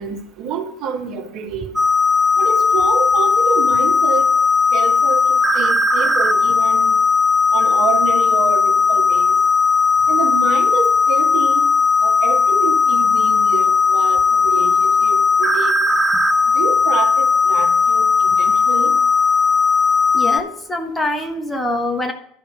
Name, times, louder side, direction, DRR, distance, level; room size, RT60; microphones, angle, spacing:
voice 1, 0.0-1.8 2.4-4.3 4.7-7.0 7.5-9.4 10.1-11.6 12.0-15.9 16.5-18.9, right 6 dB, 45° right, 3 dB, 1.5 m, -27 dB
sound 1, 1.8-20.4, left 5 dB, 5° right, 0.8 m, -16 dB
voice 2, 20.1-22.1, left 1 dB, 10° left, 5 dB, 1.1 m, -24 dB
12.0 x 5.4 x 5.2 m, 0.67 s
figure-of-eight pair, 75°, 0 cm